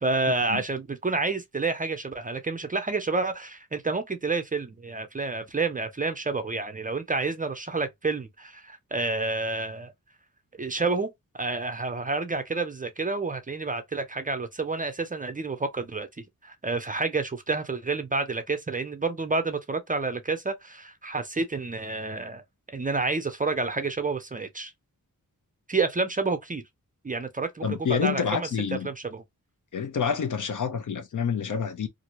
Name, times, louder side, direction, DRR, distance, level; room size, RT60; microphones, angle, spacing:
voice 1, 0.0-9.9 10.6-11.1 11.3-16.1 16.4-22.4 22.7-24.7 25.7-26.6 27.0-28.5 28.8-29.2, right 3 dB, 25° right, 0.4 m, -29 dB
voice 2, 27.6-28.9 29.7-31.9, left 7 dB, 65° left, 0.7 m, -28 dB
2.7 x 2.5 x 2.9 m
wide cardioid pair, 160°, 34 cm